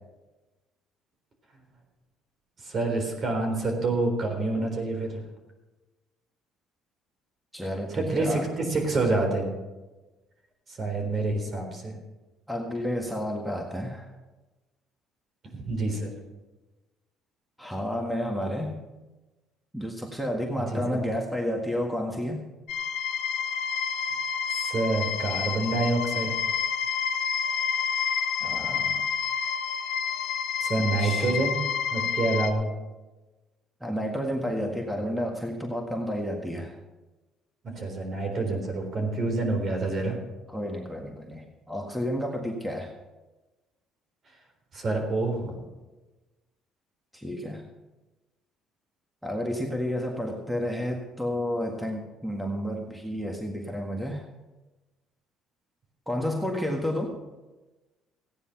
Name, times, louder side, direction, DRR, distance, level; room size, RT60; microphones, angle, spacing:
voice 1, 2.6-5.2 7.9-9.6 10.8-11.9 15.5-16.1 20.7-21.0 24.5-26.3 30.6-31.6 31.9-32.7 37.6-40.2 44.7-45.6, right 2 dB, 45° right, 3 dB, 3.9 m, -27 dB
voice 2, 7.5-8.5 12.5-14.1 17.6-18.8 19.7-22.4 28.4-29.0 31.0-31.3 33.8-36.8 40.5-42.9 47.1-47.6 49.2-54.3 56.1-57.2, equal, 5° right, 2 dB, 1.7 m, -31 dB
sound 1, 22.7-32.5, left 7 dB, 85° left, 0.9 m, -29 dB
15.0 x 9.7 x 5.8 m, 1.1 s
cardioid pair, 95°, 0 cm